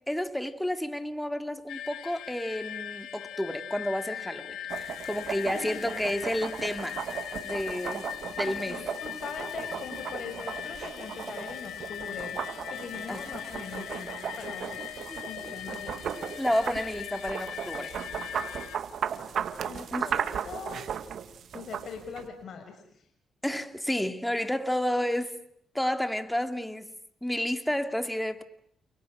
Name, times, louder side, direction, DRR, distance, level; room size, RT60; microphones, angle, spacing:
voice 1, 0.1-7.0 7.4-8.1 8.3-8.8 13.1-13.2 15.1-15.5 16.3-18.0 19.9-20.2 23.4-25.3 25.7-26.9 27.2-28.4, left 1 dB, 5° left, 2.7 m, -31 dB
sound 1, 1.7-18.8, left 11 dB, 90° left, 1.7 m, -40 dB
sound 2, 4.7-22.3, right 8 dB, 70° right, 2.2 m, -36 dB
voice 2, 5.5-6.0 8.4-12.4 12.7-16.0 19.6-20.8 21.5-23.0, left 5 dB, 65° left, 5.9 m, -42 dB
30.0 x 29.5 x 6.3 m
cardioid pair, 75°, 0 cm